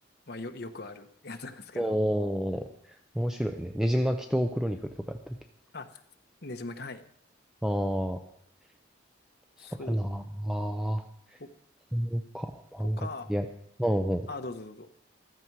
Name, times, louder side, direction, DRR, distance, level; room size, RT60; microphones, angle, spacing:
voice 1, 0.3-2.0 5.7-6.0 6.4-7.0 9.6-10.0 11.4-11.5 12.8-13.3 14.3-14.9, left 2 dB, 55° left, 7 dB, 1.1 m, -40 dB
voice 2, 1.8-5.3 7.6-8.2 9.6-11.0 11.9-13.0 13.3-13.5 13.8-14.3, equal, 5° right, 5 dB, 0.6 m, -29 dB
14.5 x 14.0 x 4.8 m, 0.72 s
head